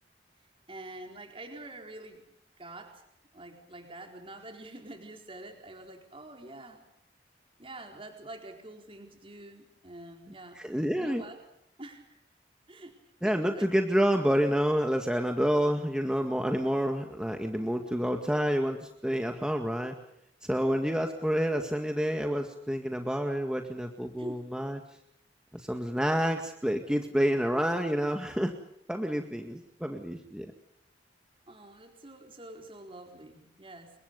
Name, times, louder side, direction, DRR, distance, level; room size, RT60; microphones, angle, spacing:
voice 1, 0.7-2.2 2.6-3.0 3.3-6.8 7.6-10.6 11.0-11.4 11.8-12.2 12.7-12.9 13.2-13.7 24.2-24.4 31.5-33.9, right 2 dB, 30° right, 3 dB, 4.3 m, -46 dB
voice 2, 10.6-11.2 13.2-19.9 20.5-24.8 25.5-28.5 28.9-30.5, equal, 5° right, 4 dB, 2.0 m, -28 dB
30.0 x 24.0 x 5.4 m, 0.76 s
head